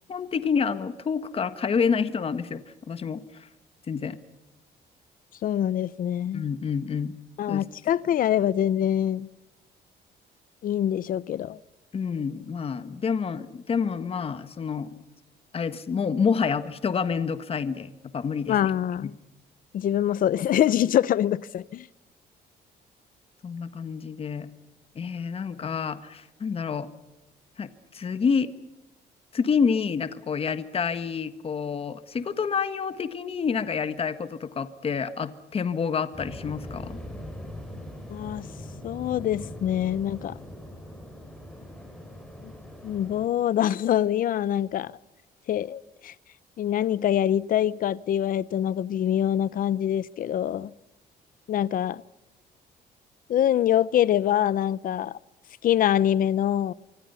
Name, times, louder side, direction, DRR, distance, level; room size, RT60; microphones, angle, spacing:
voice 1, 0.1-2.6 2.9-3.5 3.9-4.2 6.3-7.1 7.5-7.7 11.9-14.9 15.5-18.7 19.0-19.1 23.4-24.5 24.9-26.9 27.6-28.5 29.3-37.0, left 6 dB, 35° left, 1.5 m, -28 dB
voice 2, 5.4-6.4 7.4-9.3 10.6-11.6 18.5-19.1 19.7-21.9 38.1-38.5 38.8-40.3 42.4-42.5 42.8-44.9 45.5-46.1 46.6-50.7 51.5-52.0 53.3-55.2 55.6-56.7, left 11 dB, 55° left, 0.8 m, -24 dB
Waves surf, 36.1-43.3, left 1 dB, 5° left, 5.9 m, -41 dB
25.5 x 24.5 x 5.7 m
cardioid pair, 135°, 17 cm